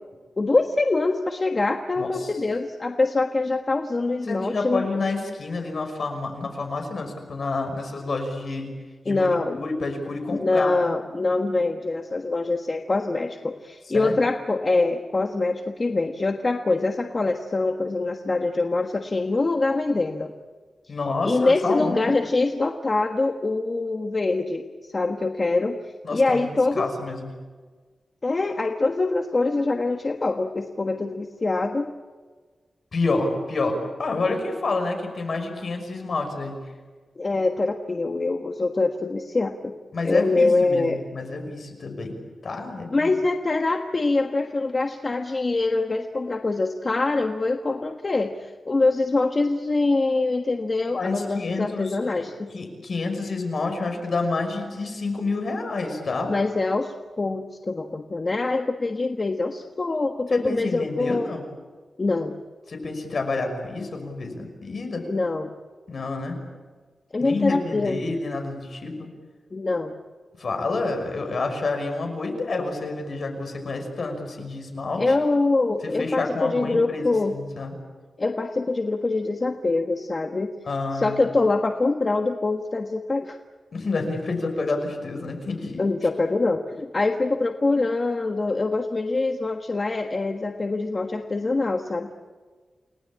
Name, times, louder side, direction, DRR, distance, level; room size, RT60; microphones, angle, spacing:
voice 1, 0.4-5.1 9.1-9.6 10.3-20.3 21.2-25.8 26.1-26.9 28.2-31.9 37.1-39.7 40.0-41.0 42.9-52.5 56.3-61.3 62.0-62.4 65.1-65.5 67.1-68.0 69.5-69.9 75.0-77.3 78.2-80.5 80.9-83.4 85.8-92.1, left 3 dB, 35° left, 4 dB, 1.4 m, -24 dB
voice 2, 2.0-2.3 4.3-8.7 9.0-10.8 13.9-14.2 20.9-22.1 26.0-26.5 26.7-27.3 32.9-36.6 39.9-42.2 42.4-43.1 50.9-52.0 52.5-56.3 60.3-61.4 62.7-65.0 65.9-66.4 67.2-69.1 70.4-75.1 75.8-77.1 77.3-77.7 80.7-81.3 83.7-85.8, left 3 dB, 60° left, 4 dB, 6.0 m, -29 dB
29.5 x 19.5 x 8.7 m, 1.4 s
wide cardioid pair, 120°, 0 cm